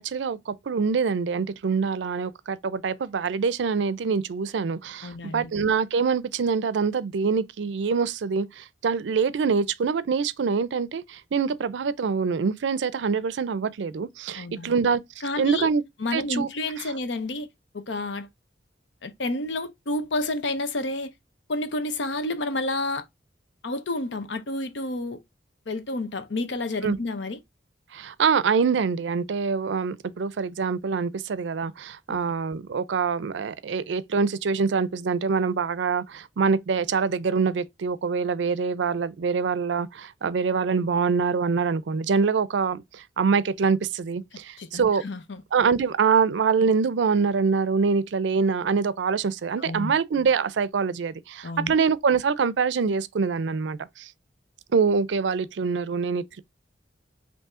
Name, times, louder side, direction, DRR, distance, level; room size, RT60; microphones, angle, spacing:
voice 1, 0.0-15.0 15.4-15.8 16.1-16.5 26.8-27.0 27.9-45.0 45.5-54.1 54.7-56.4, right 5 dB, 85° right, 0.4 m, -25 dB
voice 2, 5.0-5.5 14.4-14.8 15.2-15.7 16.0-17.5 17.7-18.3 19.0-21.1 21.5-23.0 23.6-25.2 25.7-27.4 32.1-32.2 44.6-45.4 49.6-49.9 51.4-51.7, left 2 dB, 85° left, 0.7 m, -30 dB
5.4 x 2.7 x 3.6 m
head